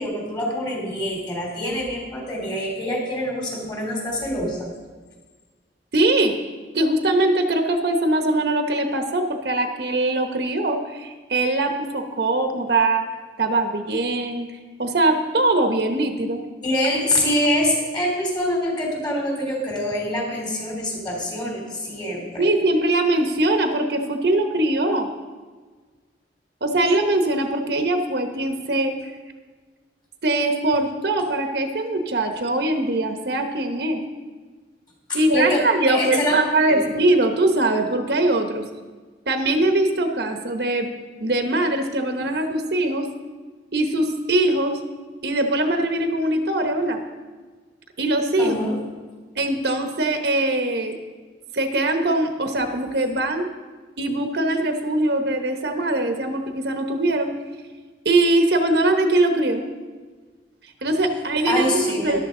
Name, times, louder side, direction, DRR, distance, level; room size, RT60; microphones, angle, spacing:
voice 1, 0.0-4.7 16.6-22.5 35.1-35.6 35.9-36.3 36.7-36.8 48.4-48.8 61.4-62.2, left 1 dB, 25° left, -1 dB, 3.2 m, -25 dB
voice 2, 5.9-6.3 6.7-13.0 13.4-14.5 14.8-16.4 22.4-25.1 26.6-28.9 30.2-34.0 35.1-38.6 39.3-40.9 41.2-43.1 43.7-44.8 45.2-47.0 48.0-48.6 49.4-51.0 51.5-53.5 54.0-57.3 58.0-59.6 60.8-62.2, right 2 dB, 60° right, 5 dB, 1.0 m, -21 dB
13.5 x 11.5 x 3.8 m, 1.4 s
head